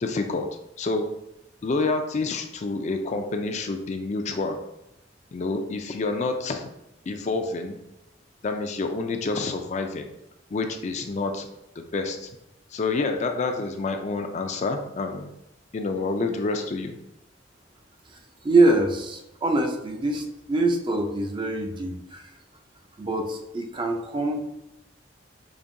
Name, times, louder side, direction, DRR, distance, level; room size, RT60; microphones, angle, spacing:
voice 1, 0.0-0.5 0.8-1.1 1.6-4.6 5.3-6.7 7.1-7.8 8.4-10.1 10.5-11.5 11.8-12.3 12.7-15.3 15.7-17.0, left 3 dB, 40° left, 5 dB, 0.4 m, -28 dB
voice 2, 18.4-22.3 23.0-24.4, right 2 dB, 25° right, 4 dB, 0.4 m, -24 dB
5.1 x 2.6 x 2.6 m, 0.88 s
head